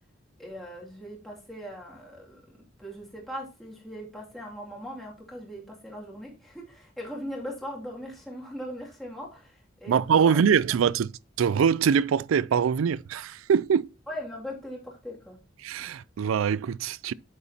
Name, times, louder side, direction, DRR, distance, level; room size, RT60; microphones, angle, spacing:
voice 1, 0.4-10.6 14.1-15.4, equal, ahead, 2.5 m, -40 dB
voice 2, 9.9-11.1 11.4-13.9 15.6-17.1, right 7 dB, 80° right, 0.3 m, -23 dB
8.8 x 8.0 x 2.8 m
head